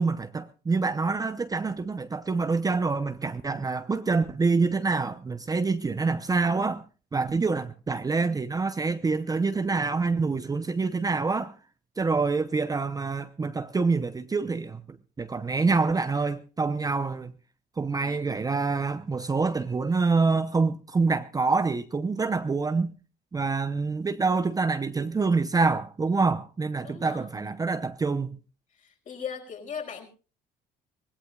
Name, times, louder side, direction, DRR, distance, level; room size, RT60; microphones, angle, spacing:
voice 1, 0.0-6.8 7.1-11.5 12.0-14.8 15.2-17.3 17.8-22.9 23.3-28.4, right 4 dB, 20° right, 0.8 m, -26 dB
voice 2, 26.8-27.6 28.7-30.1, left 7 dB, 45° left, 5.0 m, -39 dB
24.5 x 17.5 x 2.4 m
cardioid pair, 120°, 18 cm